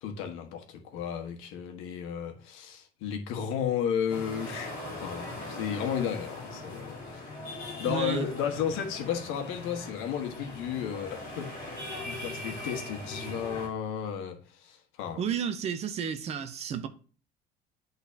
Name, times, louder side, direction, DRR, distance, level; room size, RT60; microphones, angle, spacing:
voice 1, 0.0-7.2 7.8-11.5 12.0-15.2, left 8 dB, 90° left, 1.4 m, -33 dB
sound 1, 4.1-13.7, left 2 dB, 40° left, 2.7 m, -40 dB
voice 2, 7.8-8.3 15.2-16.9, right 7 dB, 30° right, 0.6 m, -32 dB
10.5 x 4.0 x 2.8 m
cardioid pair, 180°, 20 cm